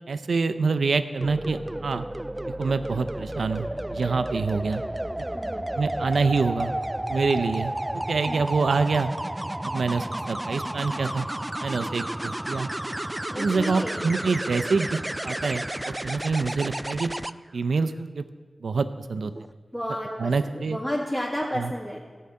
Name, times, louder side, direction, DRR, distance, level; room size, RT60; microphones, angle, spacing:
voice 1, 0.1-2.1 2.6-4.8 5.8-6.7 7.1-9.1 9.6-11.3 11.6-12.7 13.4-14.9 15.2-17.1 17.5-18.2 18.6-19.3 20.2-20.8 21.5-21.7, right 4 dB, 85° right, 11 dB, 0.6 m, -26 dB
sound 1, 1.2-17.3 19.2-19.5, right 1 dB, 15° right, 0.3 m, -32 dB
voice 2, 5.3-5.7 7.5-7.6 8.3-8.4 11.7-12.1 13.3-14.0 19.7-22.0, equal, 15° left, -5 dB, 1.7 m, -32 dB
13.5 x 5.6 x 8.6 m, 1.5 s
wide cardioid pair, 60°, 0 cm